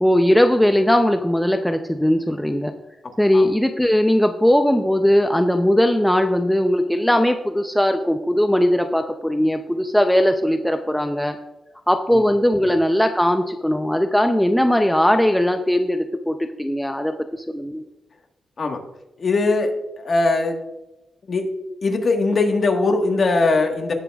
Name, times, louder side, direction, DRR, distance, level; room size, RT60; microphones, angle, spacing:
voice 1, 0.0-2.7 3.2-11.4 11.9-17.8, equal, 5° left, 6 dB, 0.5 m, -19 dB
voice 2, 19.2-19.7 20.0-20.6 21.3-21.4 21.8-23.9, left 3 dB, 45° left, 4 dB, 1.5 m, -20 dB
17.0 x 7.4 x 2.4 m, 0.95 s
wide cardioid pair, 110°, 0 cm